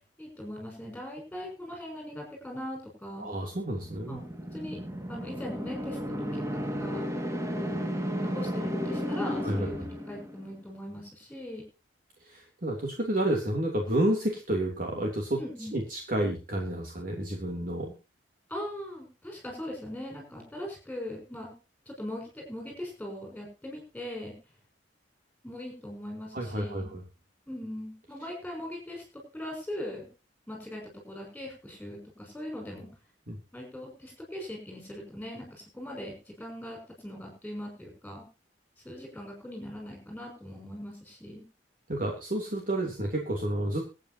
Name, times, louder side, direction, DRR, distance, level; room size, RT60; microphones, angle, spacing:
voice 1, 0.2-3.3 4.1-4.2 4.5-4.8 5.1-7.0 7.5-7.8 8.2-9.8 10.1-11.6 15.4-15.7 18.5-21.5 21.9-24.3 25.4-26.9 27.5-30.1 30.5-32.9 33.5-38.3 38.8-41.4, left 1 dB, 5° left, 0 dB, 6.1 m, -40 dB
voice 2, 3.2-4.2 9.4-9.9 12.2-15.4 15.7-17.9 26.3-27.0 33.3-33.4 41.9-43.9, right 1 dB, 45° right, 0 dB, 3.0 m, -30 dB
sound 1, 3.6-10.5, equal, 15° right, 2.1 m, -34 dB
24.0 x 9.1 x 2.9 m, 0.32 s
head